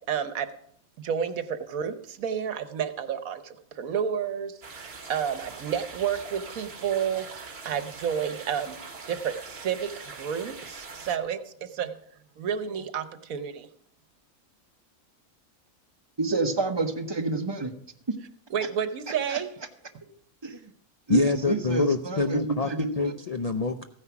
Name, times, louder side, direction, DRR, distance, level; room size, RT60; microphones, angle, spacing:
voice 1, 0.1-0.5 1.0-8.8 9.0-11.9 12.4-13.7 18.5-19.5, right 8 dB, 75° right, 11 dB, 1.3 m, -30 dB
sound 1, 4.6-11.2, right 4 dB, 45° right, 1.6 m, -43 dB
voice 2, 16.2-17.7 19.3-19.4 20.4-20.6 21.1-22.9, right 3 dB, 20° right, 6 dB, 1.0 m, -28 dB
voice 3, 21.1-23.8, left 3 dB, 45° left, 7 dB, 0.5 m, -26 dB
15.0 x 9.7 x 5.9 m, 0.66 s
omnidirectional pair, 1.5 m